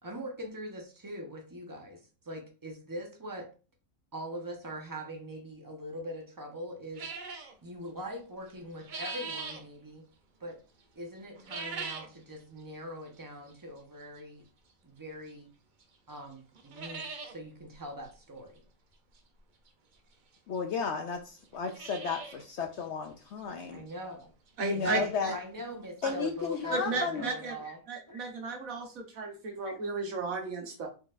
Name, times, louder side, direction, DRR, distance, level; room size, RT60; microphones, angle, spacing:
voice 1, 0.0-3.5 4.1-7.0 7.6-10.0 10.4-10.6 11.0-14.4 14.8-15.5 16.1-18.6 23.7-24.3 24.7-27.8, equal, 15° right, 0.9 m, -42 dB
sound 1, 7.0-7.5 8.5-9.6 11.3-12.2 12.6-12.7 13.5-13.6 15.3-15.4 15.8-15.9 16.2-16.3 16.5-17.3 17.7-17.8 18.0-18.1 19.7-19.8 20.5-20.6 20.8-20.9 21.4-22.4 22.8-22.9 23.4-23.5 23.9-24.0 25.7-25.8 26.0-26.1 26.5-26.6, right 4 dB, 50° right, 0.6 m, -40 dB
voice 2, 20.5-23.9 24.6-25.4 26.0-27.3 27.7-27.8, left 5 dB, 65° left, 0.7 m, -33 dB
voice 3, 24.6-25.3 26.0-26.1 26.7-27.5 27.9-30.9, right 4 dB, 70° right, 1.5 m, -34 dB
4.2 x 4.2 x 2.5 m
omnidirectional pair, 1.5 m